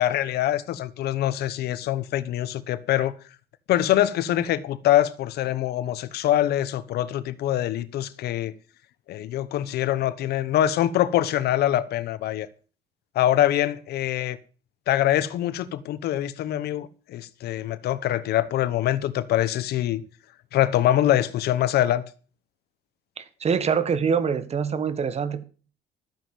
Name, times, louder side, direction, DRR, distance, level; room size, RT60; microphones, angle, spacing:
voice 1, 0.0-3.1 3.7-8.5 9.1-12.5 13.1-14.4 14.9-20.0 20.5-22.0, left 12 dB, 70° left, 1.0 m, -24 dB
voice 2, 23.2-25.4, right 6 dB, 40° right, 1.6 m, -25 dB
13.5 x 7.5 x 7.7 m
cardioid pair, 110°, 17 cm